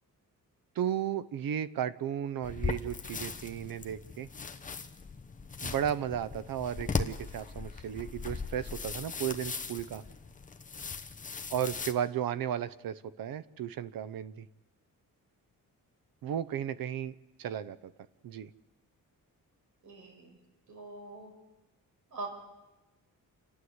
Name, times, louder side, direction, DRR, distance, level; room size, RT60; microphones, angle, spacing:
voice 1, 0.7-4.3 5.6-10.0 11.5-14.5 16.2-17.9 18.2-18.5, right 9 dB, 80° right, 15 dB, 0.9 m, -34 dB
sound 1, 2.4-11.9, left 5 dB, 25° left, 0.9 m, -38 dB
voice 2, 19.8-20.4 20.7-21.3 22.1-22.3, right 3 dB, 60° right, 3 dB, 5.6 m, -43 dB
29.0 x 11.5 x 8.0 m, 1.1 s
wide cardioid pair, 175°, 34 cm